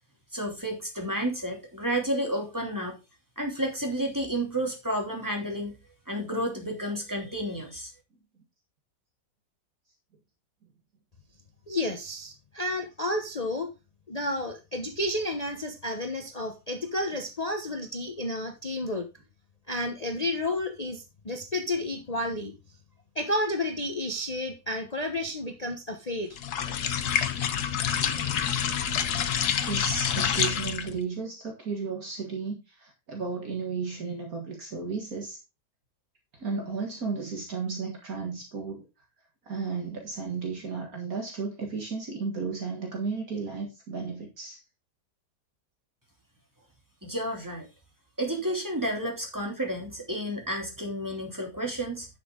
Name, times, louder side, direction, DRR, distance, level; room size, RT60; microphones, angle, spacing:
voice 1, 0.3-3.0 3.4-5.7 6.1-7.9 47.0-47.7 48.2-52.1, right 1 dB, 10° right, 2.8 m, -31 dB
voice 2, 11.7-13.7 14.1-19.1 19.7-22.5 23.1-26.3, left 1 dB, 25° left, 1.0 m, -31 dB
sound 1, 26.4-31.0, left 8 dB, 70° left, 1.5 m, -27 dB
voice 3, 29.7-35.4 36.4-38.8 39.5-44.6, right 4 dB, 60° right, 2.2 m, -34 dB
10.5 x 6.9 x 3.8 m
omnidirectional pair, 1.8 m